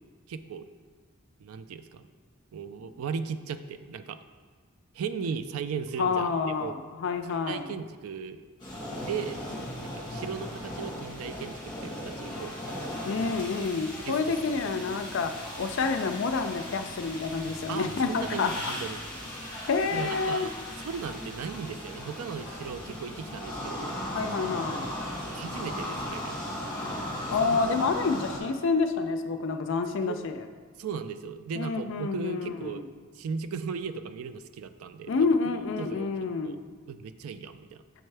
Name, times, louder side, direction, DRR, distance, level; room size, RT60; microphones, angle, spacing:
voice 1, 0.3-0.7 1.4-2.1 2.5-4.2 4.9-6.3 6.6-6.7 7.3-8.4 9.0-9.4 9.8-12.5 13.2-13.3 14.0-14.3 17.7-19.0 19.9-20.5 20.8-24.0 25.3-26.4 27.4-27.6 30.0-30.2 30.8-32.8 33.2-35.3 35.8-36.1 36.4-36.6 36.9-37.8, right 6 dB, 85° right, 10 dB, 0.4 m, -37 dB
voice 2, 6.0-7.7 13.0-15.3 15.6-18.7 19.7-20.5 24.1-24.9 27.3-30.5 31.6-32.9 35.1-36.6, left 4 dB, 60° left, 7 dB, 0.4 m, -28 dB
sound 1, 8.6-28.4, left 1 dB, 20° left, 1.4 m, -37 dB
6.5 x 4.4 x 3.3 m, 1.5 s
head